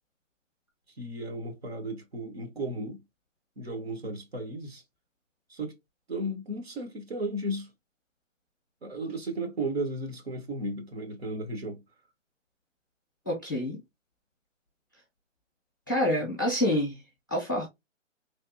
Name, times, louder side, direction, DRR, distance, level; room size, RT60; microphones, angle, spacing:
voice 1, 1.0-3.0 3.6-4.8 5.5-5.8 6.1-7.7 8.8-11.8 16.2-16.3, right 1 dB, 50° right, 1.1 m, -34 dB
voice 2, 13.3-13.8 15.9-17.0 17.3-17.7, left 1 dB, 15° left, 0.6 m, -27 dB
3.4 x 2.4 x 2.6 m
hypercardioid pair, 165°, 39 cm